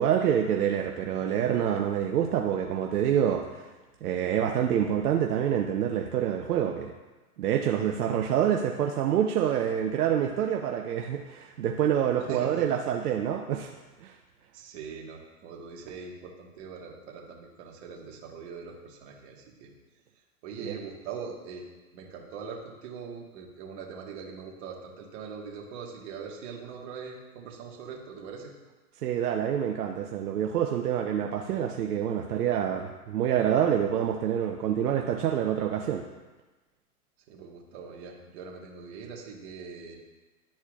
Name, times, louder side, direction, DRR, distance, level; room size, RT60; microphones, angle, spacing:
voice 1, 0.0-3.7 4.0-6.9 7.4-13.7 14.0-14.1 20.6-20.8 29.0-36.0, right 9 dB, 80° right, 2 dB, 0.7 m, -27 dB
voice 2, 12.2-12.7 14.5-19.7 20.4-21.7 21.9-28.5 37.3-40.0, right 5 dB, 45° right, -1 dB, 1.5 m, -42 dB
11.5 x 4.3 x 2.4 m, 1.2 s
hypercardioid pair, 130°, 46 cm